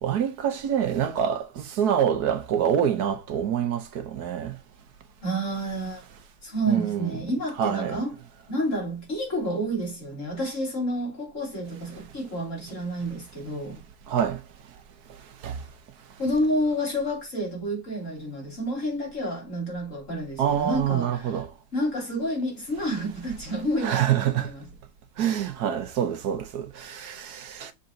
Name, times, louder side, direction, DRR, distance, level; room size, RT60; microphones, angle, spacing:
voice 1, 0.0-4.5 6.7-7.2 7.6-8.0 14.1-14.4 15.4-15.6 20.4-21.5 23.8-24.5 25.2-27.7, right 9 dB, 80° right, 1.5 m, -26 dB
voice 2, 5.2-6.0 6.4-8.1 8.5-13.8 16.2-21.4 21.7-24.7, equal, 50° left, 3.5 m, -29 dB
6.8 x 4.0 x 3.9 m
omnidirectional pair, 1.6 m